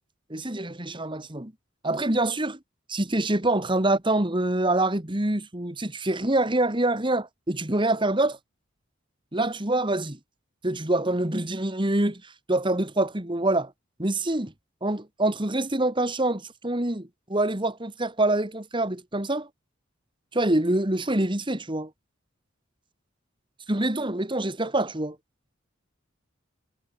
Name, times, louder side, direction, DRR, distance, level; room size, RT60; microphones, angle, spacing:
voice 1, 0.3-1.5 1.8-2.6 2.9-8.4 9.3-10.2 10.6-12.2 12.5-13.7 14.0-14.5 14.8-19.5 20.3-21.9 23.7-25.2, right 2 dB, 25° right, 2.1 m, -25 dB
head